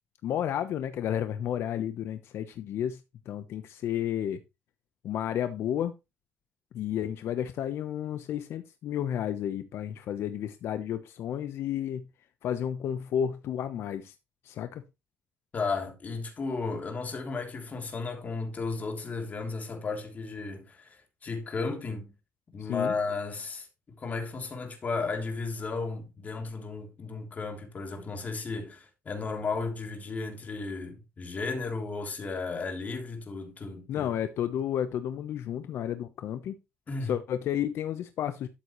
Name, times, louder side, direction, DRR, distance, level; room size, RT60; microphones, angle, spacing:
voice 1, 0.2-3.0 3.3-4.4 5.0-5.9 6.7-12.0 12.4-14.1 14.4-14.8 22.6-22.9 33.9-36.6 37.0-38.5, left 10 dB, 75° left, 0.9 m, -32 dB
voice 2, 15.5-22.1 22.5-23.7 24.0-34.1 36.9-37.1, left 4 dB, 35° left, 3.2 m, -34 dB
12.5 x 7.6 x 3.1 m
cardioid pair, 115°, 4 cm